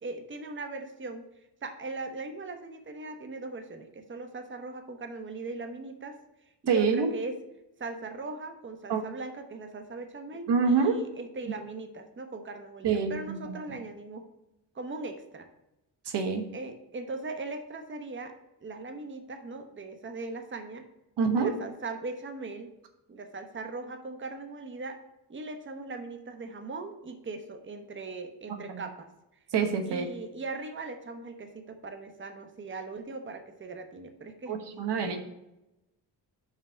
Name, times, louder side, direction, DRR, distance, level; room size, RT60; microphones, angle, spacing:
voice 1, 0.0-1.2 1.6-6.2 6.6-7.4 7.8-14.3 14.7-15.5 16.5-18.3 18.6-20.9 21.3-22.7 23.1-25.0 25.3-29.1 29.9-35.2, right 3 dB, 30° right, 7 dB, 1.0 m, -39 dB
voice 2, 6.7-7.1 8.9-9.0 10.5-11.0 12.8-13.5 16.0-16.4 21.2-21.5 28.5-28.8 29.5-30.1 34.5-35.2, right 5 dB, 75° right, 6 dB, 1.1 m, -26 dB
5.7 x 4.5 x 6.2 m, 0.93 s
cardioid pair, 95°, 42 cm